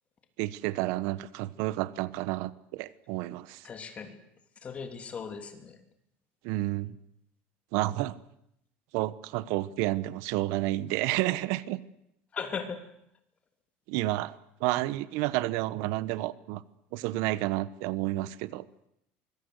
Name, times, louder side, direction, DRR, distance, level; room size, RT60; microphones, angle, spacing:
voice 1, 0.4-3.7 6.4-7.0 7.7-8.2 8.9-11.8 13.9-14.3 14.6-16.6 16.9-18.7, right 17 dB, 70° right, 17 dB, 1.0 m, -30 dB
voice 2, 3.6-4.2 4.6-5.8 12.3-12.9, left 6 dB, 25° left, 7 dB, 3.1 m, -38 dB
24.5 x 22.0 x 8.1 m, 0.76 s
cardioid pair, 150°, 5 cm